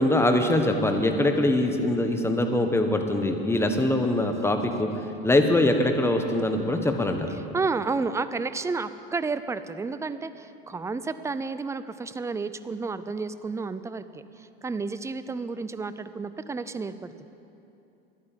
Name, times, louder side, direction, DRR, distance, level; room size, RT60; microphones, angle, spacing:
voice 1, 0.0-4.9 5.2-7.3, left 1 dB, 10° left, 5 dB, 1.4 m, -23 dB
voice 2, 7.5-17.3, right 4 dB, 10° right, 13 dB, 0.5 m, -31 dB
11.5 x 9.0 x 8.7 m, 2.8 s
hypercardioid pair, 90°, 30 cm